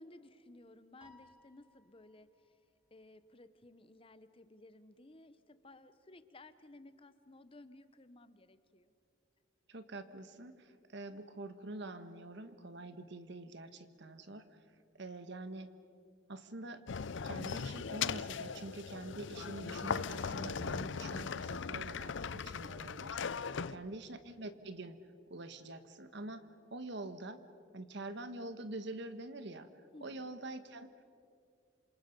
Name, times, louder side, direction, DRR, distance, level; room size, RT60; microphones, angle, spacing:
voice 1, 0.0-2.6 2.9-8.9 23.5-24.0 29.9-30.3, left 2 dB, 25° left, 12 dB, 0.8 m, -57 dB
Piano, 1.0-2.5, left 3 dB, 5° right, 2.3 m, -64 dB
voice 2, 9.7-14.6 14.9-15.7 16.3-16.8 17.2-25.0 25.3-27.4 27.7-29.7 30.0-30.9, right 2 dB, 55° right, 10 dB, 1.2 m, -46 dB
sound 1, 16.9-23.8, left 6 dB, 60° left, 0.5 m, -39 dB
27.5 x 26.5 x 5.3 m, 2.3 s
head